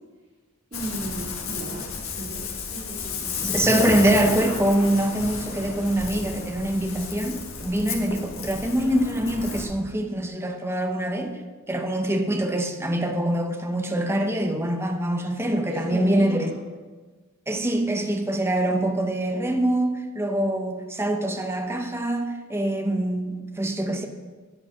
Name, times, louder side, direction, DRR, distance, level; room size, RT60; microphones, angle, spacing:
Ocean, 0.7-9.6, left 4 dB, 70° left, 1.6 m, -32 dB
voice 1, 0.7-3.4 15.7-16.5, right 1 dB, 35° right, -6 dB, 2.3 m, -35 dB
voice 2, 3.4-11.4 11.7-16.5 17.5-24.1, right 1 dB, 10° right, 5 dB, 0.8 m, -24 dB
9.8 x 8.9 x 5.4 m, 1.4 s
head